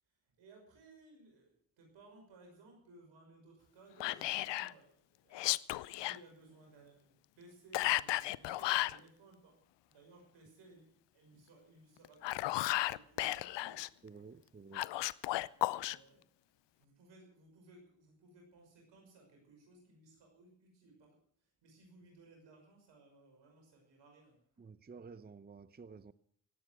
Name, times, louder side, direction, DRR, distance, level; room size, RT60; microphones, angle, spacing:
voice 1, 0.4-5.6 6.0-14.0 15.5-24.4, right 2 dB, 85° right, 6.0 m, -61 dB
Whispering, 4.0-4.7 5.3-6.2 7.7-9.0 12.0-13.9 14.7-16.0, left 16 dB, 80° left, 0.6 m, -34 dB
voice 2, 14.0-14.9 24.6-26.1, right 5 dB, 25° right, 0.7 m, -52 dB
18.5 x 8.7 x 7.7 m
supercardioid pair, 45°, 42 cm